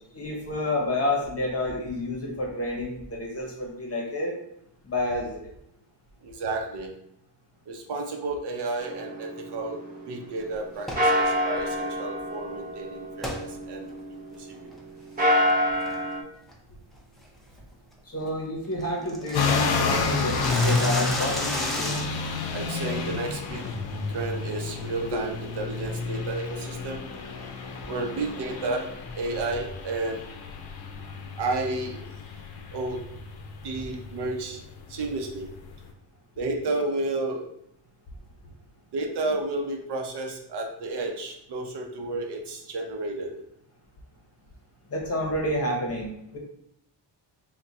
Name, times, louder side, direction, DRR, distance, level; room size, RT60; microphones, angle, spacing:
voice 1, 0.0-4.3 4.8-5.4 18.0-21.9 25.1-25.2 44.9-46.4, left 1 dB, 35° left, -1 dB, 0.9 m, -29 dB
voice 2, 6.2-6.9 7.7-13.9 14.3-14.6 22.5-23.6 24.1-27.0 27.9-30.2 31.4-32.1 32.7-33.0 33.6-34.6 34.9-35.5 36.4-37.5 38.9-43.3, right 2 dB, 65° right, 2 dB, 0.7 m, -32 dB
sound 1, 8.8-10.6 11.0-14.5 15.0-16.2, equal, 20° right, 0.8 m, -27 dB
sound 2, 10.8-11.1 13.2-13.4 13.9-14.0 14.5-14.8 15.2-15.5 15.9-16.1 16.5-16.6 17.0-17.2 17.6-17.7 18.0-18.1 18.3-18.4 18.6-22.3, equal, ahead, 0.4 m, -33 dB
sound 3, 19.3-35.9, left 4 dB, 60° left, 0.6 m, -31 dB
3.5 x 2.3 x 3.9 m, 0.77 s
wide cardioid pair, 170°, 44 cm